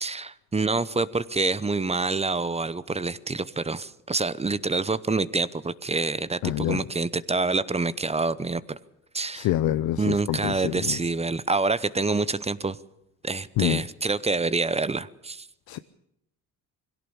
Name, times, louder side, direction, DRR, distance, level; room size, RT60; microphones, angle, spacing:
voice 1, 0.0-8.8 9.1-9.5 10.0-12.8 13.2-15.5, right 3 dB, 15° right, 16 dB, 0.9 m, -27 dB
voice 2, 6.4-6.8 9.3-11.0 13.6-13.8 15.7-15.8, left 14 dB, 80° left, 12 dB, 0.8 m, -26 dB
22.0 x 17.0 x 7.2 m, 0.81 s
cardioid pair, 90°, 36 cm